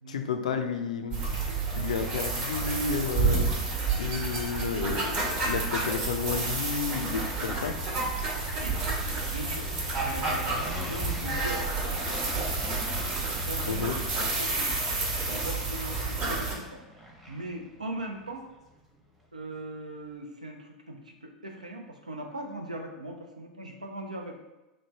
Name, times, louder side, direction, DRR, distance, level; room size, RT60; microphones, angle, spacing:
voice 1, 0.1-1.2 1.7-3.5 4.0-7.7 13.7-13.9, left 6 dB, 75° left, 6 dB, 0.4 m, -31 dB
sound 1, 1.1-16.5, right 3 dB, 40° right, 1.0 m, -30 dB
sound 2, 8.0-19.6, equal, 5° right, 0.7 m, -47 dB
voice 2, 8.6-9.7 10.0-13.1 13.4-14.7 15.1-16.8 17.3-18.4 19.3-24.4, right 1 dB, 85° right, 2 dB, 0.5 m, -40 dB
3.2 x 2.1 x 4.1 m, 1.0 s
figure-of-eight pair, 85°, 4 cm